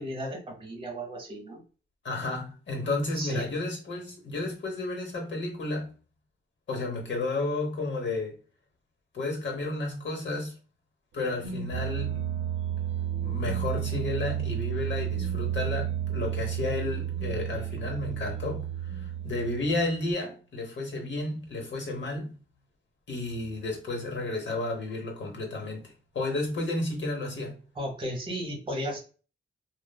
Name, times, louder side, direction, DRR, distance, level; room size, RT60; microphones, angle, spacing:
voice 1, 0.0-1.6 3.1-3.6 27.8-29.0, equal, 25° right, 0.9 m, -34 dB
voice 2, 2.0-5.9 6.7-8.4 9.1-10.6 11.1-12.2 13.2-18.7 18.9-22.3 23.1-27.6, left 2 dB, 60° left, 0.9 m, -32 dB
sound 1, 11.2-20.0, right 10 dB, 85° right, 0.5 m, -32 dB
3.1 x 2.0 x 2.2 m
wide cardioid pair, 135°, 21 cm